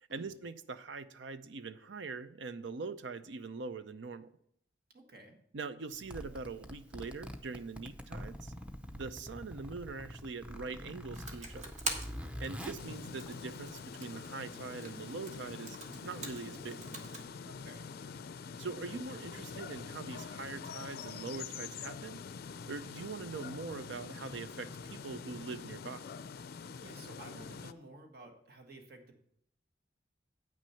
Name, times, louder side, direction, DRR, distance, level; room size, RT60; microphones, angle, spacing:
voice 1, 0.1-4.3 5.5-8.5 8.9-11.7 12.4-15.8 16.0-16.8 18.6-22.2 22.7-26.0, right 4 dB, 80° right, 13 dB, 0.6 m, -43 dB
voice 2, 4.9-5.4 17.4-17.9 26.8-29.2, right 2 dB, 60° right, 3 dB, 1.5 m, -53 dB
Zipper (clothing), 5.9-13.9, equal, 5° right, 0.7 m, -45 dB
Computer keyboard, 11.1-17.3, right 2 dB, 40° right, 1.4 m, -45 dB
sound 1, 12.8-27.7, left 6 dB, 55° left, 0.4 m, -45 dB
8.9 x 6.1 x 5.7 m, 0.69 s
head